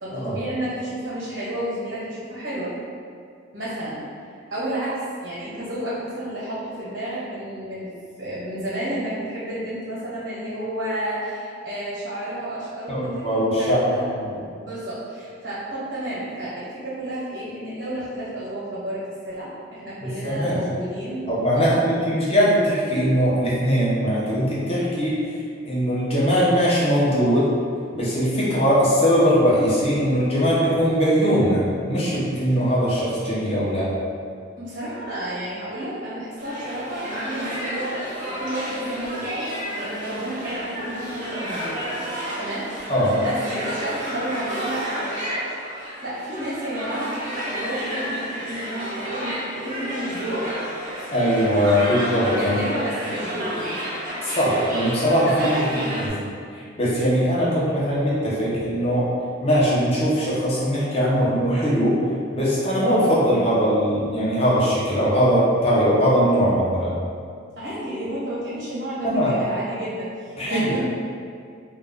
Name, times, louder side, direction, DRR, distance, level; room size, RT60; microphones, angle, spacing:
voice 1, 0.0-2.7 3.5-4.0 4.5-7.9 8.2-14.1 14.6-21.8 34.6-37.9 38.2-42.7 43.2-45.4 46.0-50.5 52.3-53.8 55.3-56.1 67.6-70.8, right 1 dB, 70° right, -10 dB, 1.0 m, -31 dB
voice 2, 12.9-14.3 20.0-20.6 21.3-25.2 25.6-27.5 27.9-33.9 42.9-43.1 51.1-52.6 54.2-56.1 56.5-59.1 59.4-62.0 62.3-66.9 69.0-69.4 70.4-70.7, equal, 35° left, -8 dB, 0.7 m, -21 dB
sound 1, 36.4-56.1, equal, 45° right, 0.6 m, -31 dB
2.4 x 2.3 x 3.5 m, 2.2 s
head